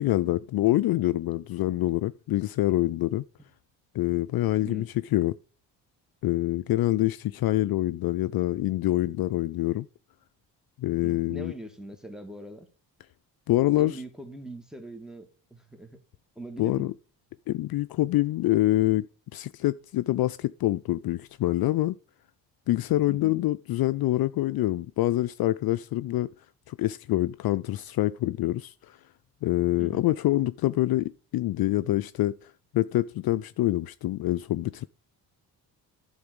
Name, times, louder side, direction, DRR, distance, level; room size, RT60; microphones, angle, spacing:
voice 1, 0.0-3.2 3.9-5.3 6.2-9.9 10.8-11.5 13.5-14.0 16.6-16.9 17.5-19.1 19.3-22.0 22.7-26.3 26.7-29.0 29.4-34.9, left 16 dB, 55° left, 0.5 m, -26 dB
voice 2, 11.0-12.7 13.8-16.0 16.4-16.9 23.1-23.3 29.8-30.1, right 1 dB, ahead, 2.1 m, -42 dB
11.5 x 4.0 x 7.8 m
supercardioid pair, 65°, 43 cm